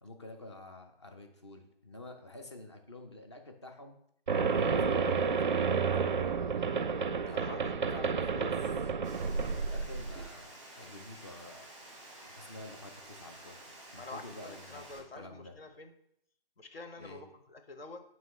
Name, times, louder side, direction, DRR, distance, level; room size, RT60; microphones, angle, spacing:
voice 1, 0.0-4.0 4.5-6.4 7.2-9.0 9.5-11.6 12.3-13.6 13.9-15.5 17.0-17.2, left 1 dB, 30° left, 4 dB, 0.6 m, -48 dB
sound 1, 4.3-10.3, right 5 dB, 50° right, 0.4 m, -30 dB
voice 2, 7.3-8.5 14.0-15.9 16.6-18.0, left 3 dB, 70° left, 5 dB, 1.0 m, -48 dB
Water, 9.0-15.0, right 1 dB, ahead, 0.8 m, -51 dB
7.4 x 3.2 x 4.1 m, 0.72 s
figure-of-eight pair, 160°, 31 cm